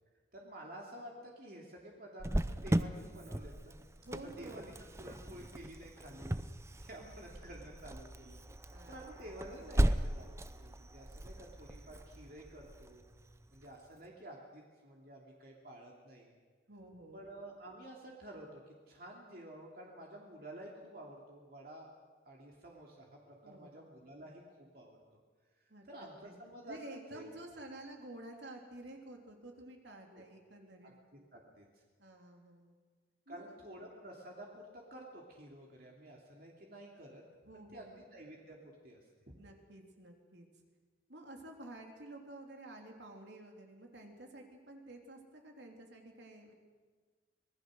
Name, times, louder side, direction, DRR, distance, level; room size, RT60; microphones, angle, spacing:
voice 1, 0.3-3.8 4.2-6.5 6.8-13.0 13.5-16.4 17.1-21.9 22.2-25.2 25.9-27.2 30.1-30.2 30.8-31.6 33.3-37.2 37.5-39.0, right 1 dB, 50° right, -1 dB, 2.8 m, -51 dB
Cricket, 2.2-13.7, right 1 dB, 15° right, 0.6 m, -37 dB
voice 2, 4.0-4.7 7.0-7.2 8.7-9.3 16.7-17.2 23.4-23.7 24.2-24.3 25.7-26.3 26.6-30.9 32.0-32.7 33.3-33.6 37.4-38.0 39.4-40.5 41.1-46.5, right 1 dB, 70° right, 2 dB, 3.4 m, -51 dB
25.5 x 19.5 x 6.5 m, 1.4 s
head